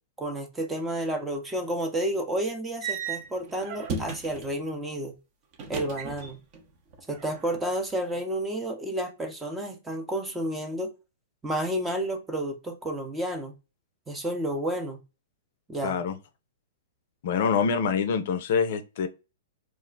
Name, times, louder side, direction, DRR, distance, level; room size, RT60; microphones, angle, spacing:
voice 1, 0.2-5.1 5.7-6.4 7.1-10.9 11.4-13.5 14.1-15.0 15.7-16.0, right 1 dB, 10° right, 0.7 m, -31 dB
sound 1, 2.8-4.6 5.5-6.6 6.9-7.7, right 5 dB, 40° right, 0.8 m, -35 dB
voice 2, 15.8-16.2 17.2-19.1, left 6 dB, 60° left, 0.4 m, -25 dB
2.4 x 2.1 x 3.8 m
hypercardioid pair, 120°, 0 cm